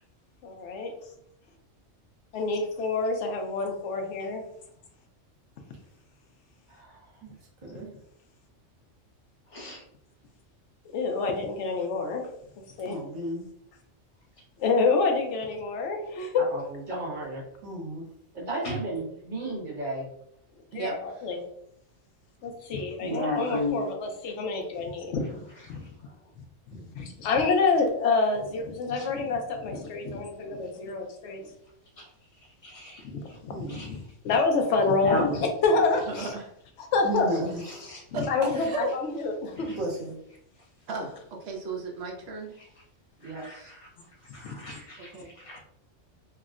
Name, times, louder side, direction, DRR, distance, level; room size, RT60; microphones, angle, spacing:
voice 1, 0.4-0.9 2.3-4.4 10.9-12.2 12.8-13.0 14.6-16.4 20.7-21.4 22.4-25.4 25.7-25.8 26.9-31.5 33.1-34.0 34.2-36.3 36.8-37.3 38.1-39.7 44.4-44.7, left 4 dB, 70° left, 3 dB, 0.9 m, -27 dB
voice 2, 6.7-7.2 16.3-17.4 18.3-20.1 43.2-43.7, right 2 dB, 40° right, -4 dB, 1.1 m, -35 dB
voice 3, 9.5-9.8 18.6-18.8 23.0-23.9 25.7-25.8 28.9-29.1 32.0-32.1 32.6-33.0 33.7-33.9 35.0-35.4 37.6-38.0 39.7-39.8 42.6-42.7 43.2-43.8 44.3-45.1 45.4-45.6, left 1 dB, 35° left, -3 dB, 0.6 m, -33 dB
voice 4, 12.9-13.5 17.6-18.1 26.7-26.9 33.5-33.8 37.0-38.0 39.8-40.1, right 1 dB, 85° right, -1 dB, 1.2 m, -34 dB
voice 5, 36.2-36.5 38.1-38.9 40.9-42.5 45.0-45.3, right 3 dB, 65° right, 1 dB, 0.8 m, -34 dB
3.5 x 2.0 x 2.4 m, 0.72 s
omnidirectional pair, 1.3 m